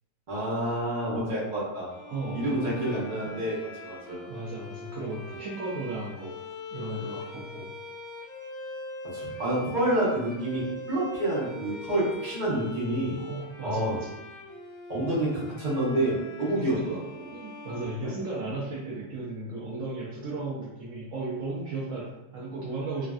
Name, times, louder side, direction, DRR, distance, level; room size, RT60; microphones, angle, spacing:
voice 1, 0.3-1.9 2.3-4.2 9.1-13.2 13.6-14.0 14.9-17.2 18.0-18.1, right 1 dB, 40° right, -8 dB, 0.7 m, -28 dB
sound 1, 1.9-18.7, left 3 dB, 65° left, 0.8 m, -42 dB
voice 2, 2.1-2.9 3.2-3.4 4.3-6.3 6.7-7.7 13.2-14.0 16.6-16.8 17.3-23.1, right 2 dB, 85° right, -6 dB, 0.7 m, -35 dB
3.2 x 2.5 x 2.3 m, 0.98 s
omnidirectional pair, 2.0 m